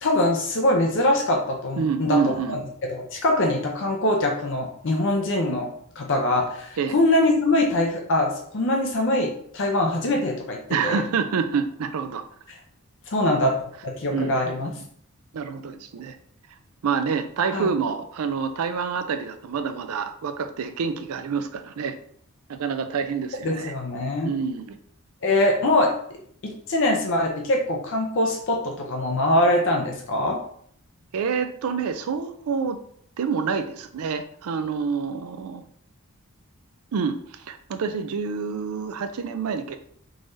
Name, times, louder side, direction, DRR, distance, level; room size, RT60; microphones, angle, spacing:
voice 1, 0.0-2.6 2.9-5.7 6.0-11.0 13.1-13.5 13.8-14.7 17.5-17.7 23.4-24.3 25.2-25.9 26.4-30.4, left 1 dB, 55° left, 1 dB, 0.5 m, -23 dB
voice 2, 1.8-2.6 6.8-6.9 10.7-12.2 14.1-14.8 15.3-16.2 16.8-22.0 22.5-23.7 24.2-24.8 31.1-32.8 33.2-35.6 36.9-39.8, right 5 dB, 75° right, 9 dB, 0.4 m, -27 dB
3.7 x 3.1 x 2.6 m, 0.63 s
head